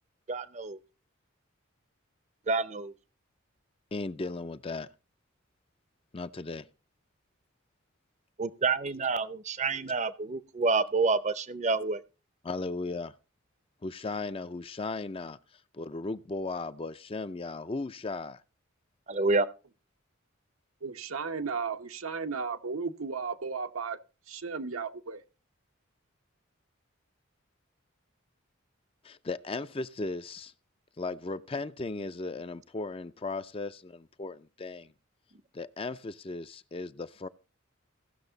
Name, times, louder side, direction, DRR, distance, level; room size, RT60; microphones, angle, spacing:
voice 1, 0.3-0.8 2.5-2.9 8.4-12.0 19.1-19.5, right 3 dB, 35° right, 0.6 m, -28 dB
voice 2, 3.9-4.9 6.1-6.7 12.4-13.1 13.8-18.4 29.0-30.5 31.0-34.9 35.5-37.3, left 3 dB, 25° left, 0.5 m, -36 dB
voice 3, 20.8-24.0 24.3-25.2, right 5 dB, 85° right, 0.9 m, -34 dB
17.0 x 6.5 x 3.9 m
head